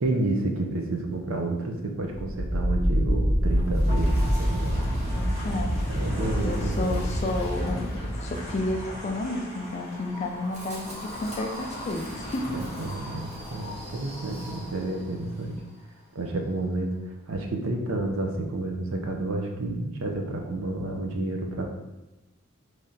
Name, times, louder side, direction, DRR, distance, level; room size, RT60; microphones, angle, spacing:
voice 1, 0.0-4.8 5.9-7.0 12.5-15.6 16.1-17.0 17.3-21.6, right 2 dB, 70° right, 3 dB, 0.5 m, -30 dB
Wind, 2.1-15.0, equal, 30° right, 1.0 m, -29 dB
voice 2, 5.1-6.1 6.4-12.6, left 2 dB, 30° left, 2 dB, 0.3 m, -32 dB
3.2 x 2.7 x 3.7 m, 1.0 s
head